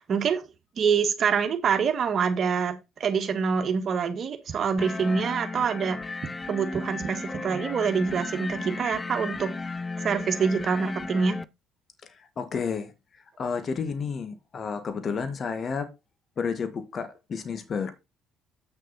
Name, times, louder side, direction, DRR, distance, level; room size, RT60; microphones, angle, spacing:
voice 1, 0.1-0.4 0.8-6.0 6.5-9.7 10.0-11.4, right 6 dB, 50° right, 1.7 m, -26 dB
sound 1, 4.8-11.4, left 3 dB, 25° left, 0.7 m, -35 dB
voice 2, 12.0-15.9 16.4-17.9, left 5 dB, 45° left, 1.8 m, -31 dB
8.3 x 6.6 x 4.2 m
hypercardioid pair, 60°, 0 cm